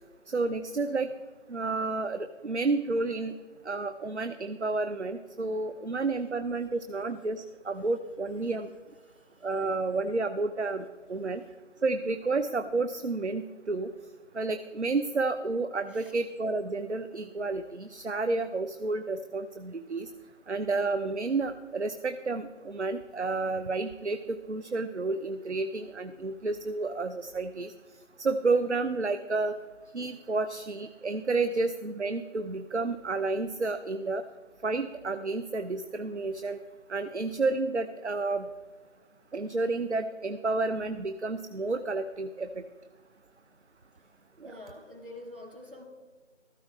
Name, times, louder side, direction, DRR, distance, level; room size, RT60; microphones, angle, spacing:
voice 1, 0.3-1.1 1.5-3.3 3.6-8.7 9.4-11.4 11.8-13.9 14.3-20.1 20.5-27.7 28.2-29.5 29.9-34.2 34.6-36.6 36.9-38.5 39.3-42.6 44.4-44.5, right 3 dB, 65° right, 10 dB, 0.6 m, -30 dB
voice 2, 9.0-9.5 15.9-16.1 44.4-45.8, left 1 dB, 45° right, -1 dB, 3.2 m, -47 dB
14.0 x 13.0 x 3.4 m, 1.4 s
figure-of-eight pair, 175°, 38 cm